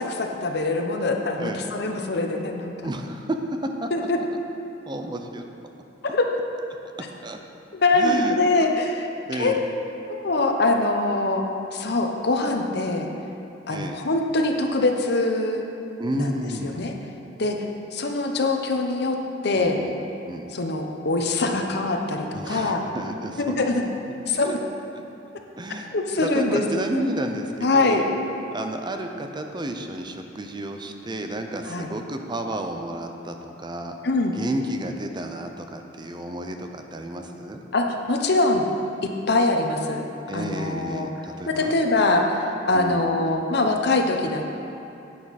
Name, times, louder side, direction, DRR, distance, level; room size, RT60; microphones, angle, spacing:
voice 1, 0.0-2.7 3.9-4.2 6.0-6.3 7.7-9.1 9.3-9.5 10.1-11.4 11.7-13.1 13.7-15.7 16.2-16.9 17.4-17.6 17.9-19.2 19.4-19.8 20.5-22.8 23.4-23.8 24.3-24.7 25.7-27.0 27.6-28.0 31.7-31.9 34.0-34.3 37.7-38.7 39.3-40.0 40.3-41.1 41.5-44.5, left 2 dB, 65° left, 3 dB, 0.9 m, -23 dB
voice 2, 2.8-3.4 3.8-3.9 4.9-5.4 7.2-7.4 8.0-8.4 9.3-9.6 13.7-14.0 16.0-17.1 19.5-20.0 20.3-20.5 22.3-23.5 25.6-25.9 26.2-28.0 28.5-34.0 34.4-37.6 40.3-41.8 42.7-43.0, right 1 dB, 25° right, 5 dB, 0.6 m, -31 dB
10.5 x 8.6 x 4.2 m, 2.7 s
head